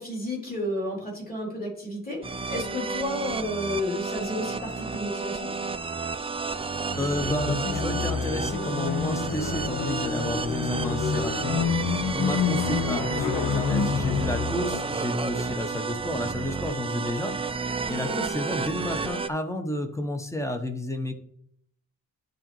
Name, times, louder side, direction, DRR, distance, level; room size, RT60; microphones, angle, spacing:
voice 1, 0.0-5.5 18.1-18.2, left 1 dB, 25° left, -3 dB, 3.0 m, -32 dB
sound 1, 2.2-19.3, right 4 dB, 20° right, 0.3 m, -31 dB
voice 2, 6.5-21.1, left 1 dB, 10° left, 5 dB, 0.9 m, -31 dB
sound 2, 7.2-14.9, left 6 dB, 80° left, 0.7 m, -28 dB
11.5 x 3.9 x 3.0 m, 0.69 s
wide cardioid pair, 125°, 33 cm